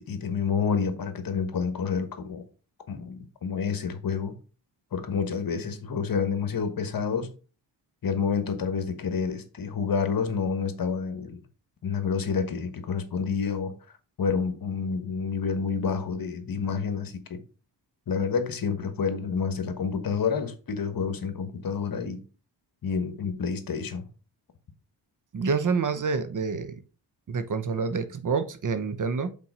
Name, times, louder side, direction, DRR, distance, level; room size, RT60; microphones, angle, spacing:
voice 1, 0.0-2.4 2.9-4.4 4.9-7.3 8.0-11.4 11.8-13.7 14.2-17.4 18.1-22.2 22.8-24.0, left 6 dB, 50° left, 1.3 m, -29 dB
voice 2, 25.3-26.8 27.3-29.3, right 5 dB, 45° right, 0.9 m, -27 dB
5.7 x 4.5 x 5.4 m
cardioid pair, 90°, 44 cm